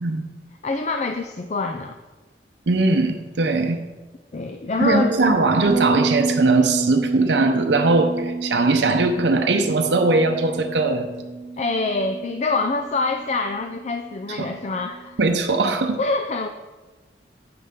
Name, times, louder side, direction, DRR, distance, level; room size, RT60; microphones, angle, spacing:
voice 1, 0.6-2.0 4.3-5.1 11.6-15.2 16.0-16.5, left 3 dB, 40° left, 6 dB, 0.4 m, -25 dB
voice 2, 2.7-3.8 4.8-11.1 14.3-14.5 15.2-16.0, right 3 dB, 80° right, 5 dB, 0.7 m, -20 dB
Bass guitar, 5.7-15.0, right 4 dB, 55° right, 1.0 m, -30 dB
9.7 x 7.7 x 3.6 m, 1.2 s
head